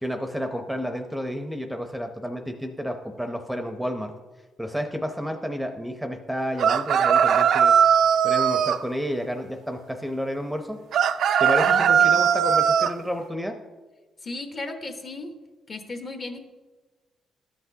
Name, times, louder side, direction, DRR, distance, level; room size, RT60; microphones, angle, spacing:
voice 1, 0.0-4.1 4.6-7.7 8.2-10.8 11.4-13.6, equal, ahead, 5 dB, 0.6 m, -30 dB
sound 1, 6.6-8.8 10.9-12.9, right 8 dB, 70° right, 0.3 m, -19 dB
voice 2, 11.6-12.1 14.2-15.3 15.7-16.4, left 2 dB, 40° left, 6 dB, 1.0 m, -35 dB
12.5 x 5.9 x 2.7 m, 1.2 s
cardioid pair, 90°, 0 cm